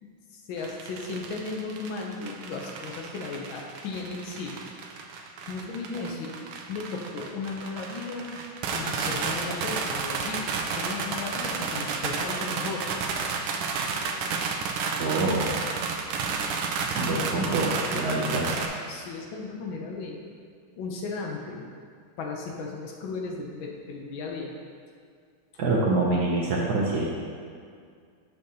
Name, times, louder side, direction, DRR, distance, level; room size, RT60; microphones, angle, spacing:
voice 1, 0.0-4.6 5.5-6.3 6.7-8.3 8.7-10.5 10.8-12.9 16.9-18.3 18.9-20.2 20.7-21.7 22.2-24.5, left 4 dB, 75° left, 0 dB, 1.5 m, -35 dB
sound 1, 0.6-18.7, right 5 dB, 85° right, 1.5 m, -32 dB
voice 2, 15.0-15.6 16.9-18.5 25.6-27.1, right 2 dB, 65° right, -3 dB, 1.1 m, -25 dB
6.9 x 6.5 x 2.8 m, 2.2 s
omnidirectional pair, 2.3 m